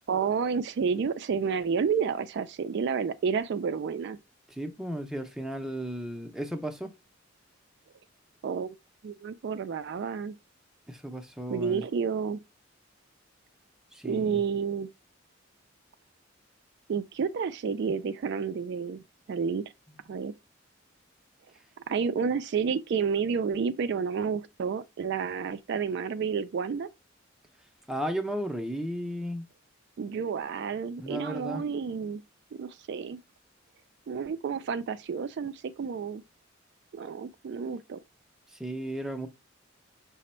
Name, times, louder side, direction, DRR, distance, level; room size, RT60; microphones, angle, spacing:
voice 1, 0.1-4.2 8.4-8.8 9.0-10.4 11.5-12.4 14.0-14.9 16.9-19.0 19.3-19.6 20.1-20.3 21.9-26.9 30.0-32.2 32.5-33.2 34.1-36.2 36.9-38.0, right 6 dB, 60° right, 0.3 m, -30 dB
voice 2, 4.5-6.9 10.9-11.8 13.9-14.4 27.9-29.5 31.0-31.6 38.6-39.3, equal, 5° right, 0.5 m, -34 dB
5.9 x 2.1 x 4.2 m
head